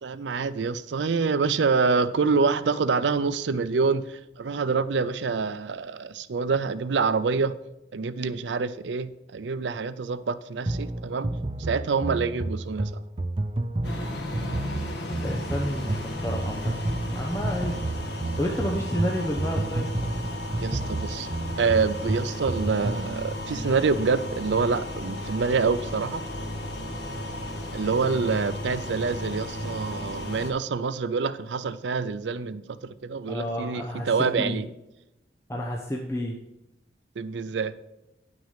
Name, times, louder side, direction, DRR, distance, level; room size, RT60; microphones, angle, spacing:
voice 1, 0.0-7.6 7.9-11.3 11.6-12.9 20.6-21.3 21.6-26.2 27.7-34.6 37.2-37.7, right 4 dB, 85° right, 15 dB, 0.5 m, -26 dB
sound 1, 10.7-23.1, right 2 dB, 30° right, 0.4 m, -31 dB
sound 2, 13.8-30.5, left 1 dB, 75° left, 1.6 m, -34 dB
voice 2, 15.2-16.7 17.1-17.8 18.4-19.9 33.3-34.6 35.5-36.3, equal, 15° left, -2 dB, 0.8 m, -30 dB
10.0 x 6.2 x 5.7 m, 0.92 s
head